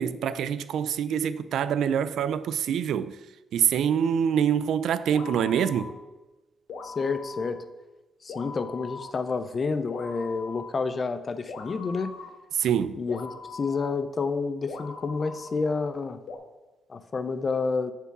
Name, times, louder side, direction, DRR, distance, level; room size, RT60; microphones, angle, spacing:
voice 1, 0.0-3.2 3.5-5.9 12.5-13.0, right 8 dB, 75° right, 0.3 m, -25 dB
sound 1, 5.1-6.1 6.7-7.7 8.3-9.1 9.9-10.7 11.5-12.3 13.1-13.9 14.7-15.5 16.3-16.4, left 4 dB, 60° left, 0.9 m, -41 dB
voice 2, 6.8-7.6 8.2-12.1 13.0-16.2 16.9-17.9, left 4 dB, 30° left, 0.4 m, -29 dB
6.7 x 4.6 x 6.0 m
wide cardioid pair, 175°, 0 cm